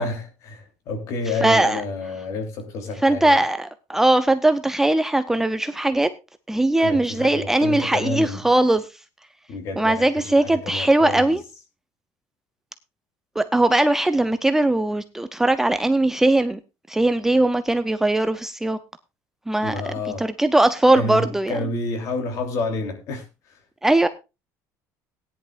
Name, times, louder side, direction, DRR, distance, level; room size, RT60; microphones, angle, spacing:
voice 1, 0.0-3.4 6.8-8.4 9.5-11.4 19.6-20.2 20.9-23.3, left 2 dB, 50° left, 3.1 m, -29 dB
voice 2, 1.4-1.8 3.0-6.1 6.5-8.9 9.8-11.4 13.4-16.6 16.9-18.8 19.5-21.6 23.8-24.1, right 1 dB, 5° right, 0.5 m, -20 dB
17.5 x 10.5 x 2.5 m
cardioid pair, 160°, 7 cm